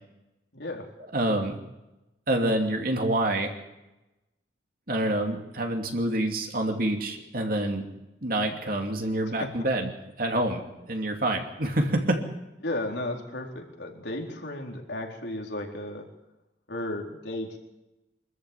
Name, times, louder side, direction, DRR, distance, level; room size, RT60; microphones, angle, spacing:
voice 1, 0.5-0.9 9.3-9.7 12.6-16.1 16.7-17.6, left 1 dB, 75° left, 1 dB, 4.3 m, -34 dB
voice 2, 1.1-1.6 2.3-3.5 4.9-7.9 8.2-9.9 10.2-10.6 10.9-12.2, right 1 dB, 55° right, 3 dB, 2.8 m, -27 dB
25.0 x 14.0 x 8.6 m, 0.97 s
head